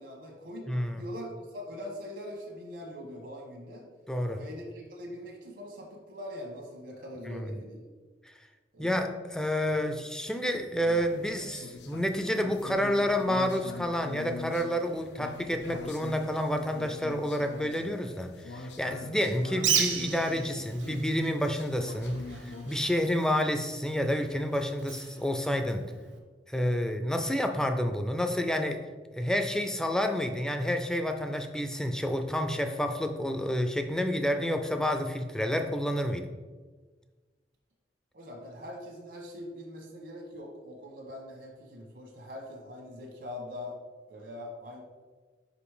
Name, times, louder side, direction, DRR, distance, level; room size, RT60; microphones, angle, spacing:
voice 1, 0.0-3.9 4.3-7.8 8.7-9.0 9.6-10.0 38.1-43.7 44.1-44.8, left 1 dB, 70° right, -1 dB, 1.2 m, -42 dB
voice 2, 0.7-1.0 4.1-4.4 7.3-7.4 8.8-25.8 26.5-28.8 29.1-36.3, equal, 5° left, 6 dB, 0.4 m, -29 dB
sound 1, 10.8-22.8, left 2 dB, 75° left, 0.6 m, -43 dB
Bird, 19.5-26.2, right 7 dB, 90° right, 0.9 m, -35 dB
5.3 x 5.1 x 4.9 m, 1.4 s
head